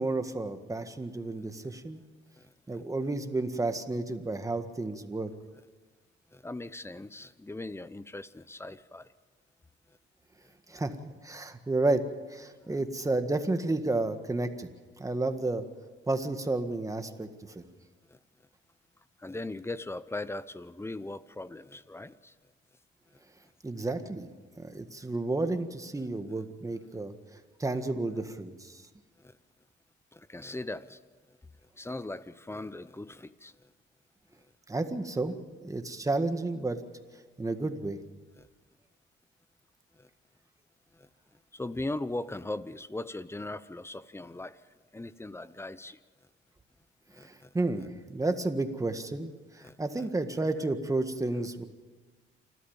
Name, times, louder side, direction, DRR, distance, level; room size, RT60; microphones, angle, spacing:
voice 1, 0.0-2.0 2.7-5.3 10.7-10.9 11.2-14.7 15.0-15.6 16.1-17.3 17.6-17.7 23.6-24.3 24.6-28.8 34.7-35.3 35.6-36.8 37.4-38.0 47.2-51.6, right 2 dB, 15° right, 8 dB, 1.7 m, -31 dB
voice 2, 2.4-2.8 6.3-9.1 10.7-10.8 12.6-12.8 18.1-18.2 19.2-22.3 29.2-29.4 30.1-31.0 31.8-33.5 38.4-38.5 39.9-40.1 40.9-41.1 41.5-44.6 44.9-46.0 47.1-47.5 49.6-50.1, left 2 dB, 10° left, 15 dB, 0.8 m, -39 dB
28.0 x 13.0 x 7.3 m, 1.4 s
cardioid pair, 90°, 20 cm